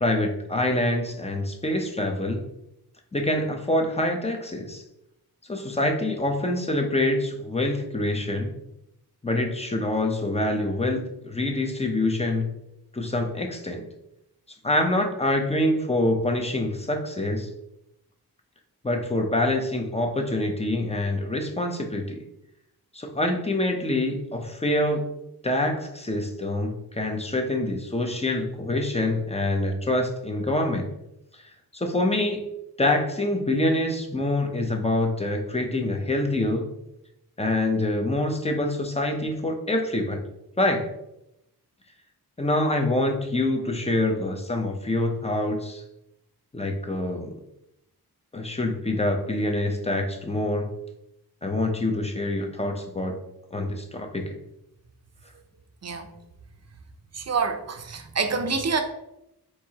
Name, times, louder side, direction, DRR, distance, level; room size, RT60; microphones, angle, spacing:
voice 1, 0.0-2.4 3.1-4.8 5.5-8.5 9.2-12.6 12.9-13.9 14.6-17.5 18.8-22.2 22.9-25.0 25.4-30.9 31.7-32.4 32.8-36.7 37.4-40.2 40.6-40.9 42.4-45.8 46.5-47.3 48.3-50.7 51.4-53.2 53.5-54.4, left 1 dB, 15° left, 3 dB, 0.6 m, -25 dB
voice 2, 57.3-58.8, right 5 dB, 40° right, 6 dB, 0.6 m, -26 dB
4.6 x 3.6 x 2.8 m, 0.84 s
wide cardioid pair, 90°, 39 cm